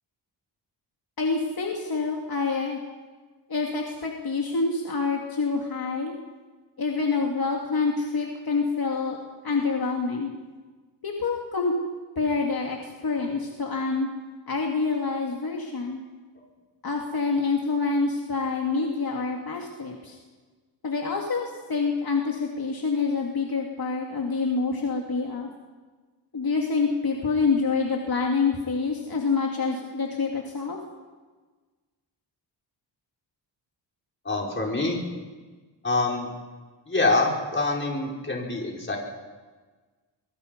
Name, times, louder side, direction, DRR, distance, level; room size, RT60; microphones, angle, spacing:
voice 1, 1.2-2.8 3.5-6.1 6.8-9.2 9.4-10.3 11.0-11.7 12.2-14.1 14.5-16.0 16.8-20.2 20.8-25.5 26.3-30.8, left 4 dB, 50° left, 0 dB, 2.8 m, -27 dB
voice 2, 34.3-35.0 35.8-36.3 36.9-39.0, left 2 dB, 25° left, -1 dB, 5.5 m, -25 dB
24.0 x 23.5 x 5.5 m, 1.4 s
cardioid pair, 90°, 44 cm